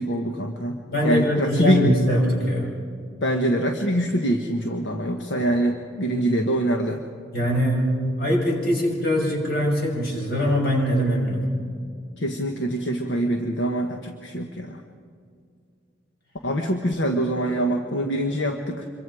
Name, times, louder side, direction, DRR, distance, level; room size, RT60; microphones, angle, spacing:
voice 1, 0.0-1.9 3.2-7.0 12.2-14.8 16.4-18.8, right 1 dB, 75° left, 3 dB, 1.4 m, -24 dB
voice 2, 0.9-2.7 5.3-5.5 7.3-11.5, equal, 55° left, -1 dB, 6.2 m, -22 dB
27.0 x 23.0 x 4.9 m, 2.3 s
head